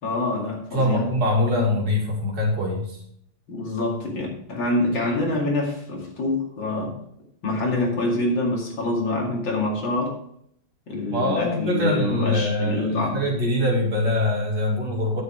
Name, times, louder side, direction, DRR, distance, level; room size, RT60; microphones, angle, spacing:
voice 1, 0.0-1.0 3.5-6.9 7.4-10.1 10.9-13.2, left 2 dB, 75° left, -1 dB, 3.1 m, -26 dB
voice 2, 0.7-3.0 4.9-5.2 11.1-15.2, left 1 dB, 70° right, -1 dB, 3.0 m, -23 dB
9.3 x 7.8 x 4.5 m, 0.69 s
omnidirectional pair, 2.0 m